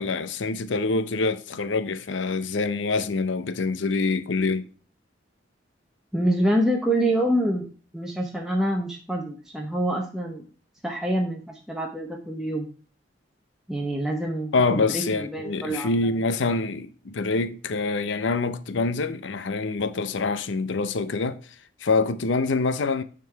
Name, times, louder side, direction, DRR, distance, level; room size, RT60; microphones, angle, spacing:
voice 1, 0.0-4.7 14.5-21.4 21.8-23.0, left 3 dB, 80° left, 0.6 m, -25 dB
voice 2, 6.1-7.7 7.9-10.4 10.8-12.7 13.7-15.9, right 1 dB, 5° right, 0.8 m, -26 dB
9.3 x 3.8 x 4.6 m
head